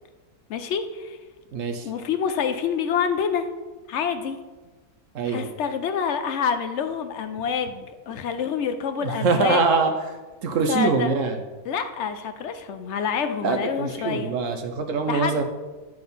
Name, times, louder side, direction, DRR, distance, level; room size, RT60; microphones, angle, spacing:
voice 1, 0.5-1.2 1.8-3.5 3.9-4.4 5.2-9.6 10.7-11.1 11.6-14.3 15.1-15.4, left 7 dB, 65° left, 8 dB, 0.7 m, -27 dB
voice 2, 1.5-1.9 5.1-5.5 9.0-9.9 10.4-11.4 13.4-15.4, right 4 dB, 65° right, 6 dB, 1.0 m, -23 dB
9.3 x 3.9 x 5.4 m, 1.2 s
omnidirectional pair, 1.6 m